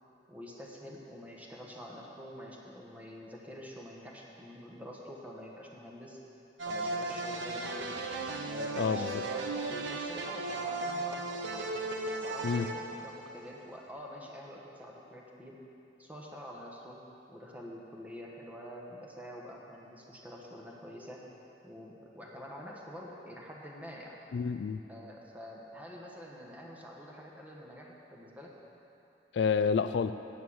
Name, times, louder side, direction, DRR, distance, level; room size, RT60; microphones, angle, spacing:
voice 1, 0.3-6.2 6.7-8.0 8.4-11.7 12.2-15.6 16.0-17.0 17.3-21.2 21.6-24.2 24.9-28.5, equal, 10° right, -2 dB, 1.2 m, -47 dB
sound 1, 6.6-13.6, right 2 dB, 80° right, 0.9 m, -36 dB
voice 2, 8.8-9.2 12.4-12.7 24.3-24.8 29.3-30.1, left 6 dB, 65° left, 12 dB, 0.3 m, -29 dB
9.3 x 8.7 x 6.3 m, 2.9 s
head